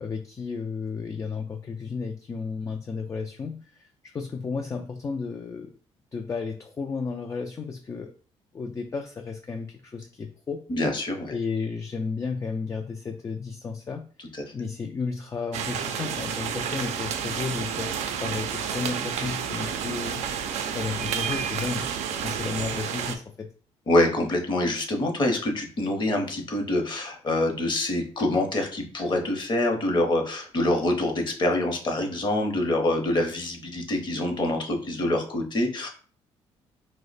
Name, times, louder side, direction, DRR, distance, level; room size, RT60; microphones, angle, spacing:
voice 1, 0.0-5.7 6.1-8.1 8.5-10.6 11.3-14.1 14.5-17.9 18.2-20.2 20.7-23.5, left 5 dB, 25° left, 3 dB, 0.3 m, -33 dB
voice 2, 10.7-11.4 23.9-35.9, left 1 dB, 40° left, 3 dB, 0.8 m, -25 dB
sound 1, 15.5-23.2, right 8 dB, 75° right, 0.4 m, -30 dB
2.8 x 2.1 x 4.0 m, 0.42 s
cardioid pair, 95°, 12 cm